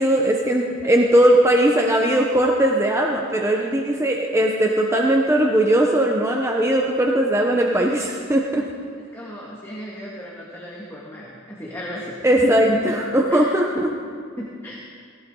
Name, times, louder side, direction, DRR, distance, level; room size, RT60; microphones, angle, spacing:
voice 1, 0.0-8.6 12.2-13.9, right 1 dB, 15° right, 0 dB, 0.8 m, -19 dB
voice 2, 9.1-12.9 13.3-13.9 14.4-14.8, equal, 10° left, -5 dB, 1.8 m, -33 dB
18.5 x 16.0 x 3.8 m, 2.2 s
head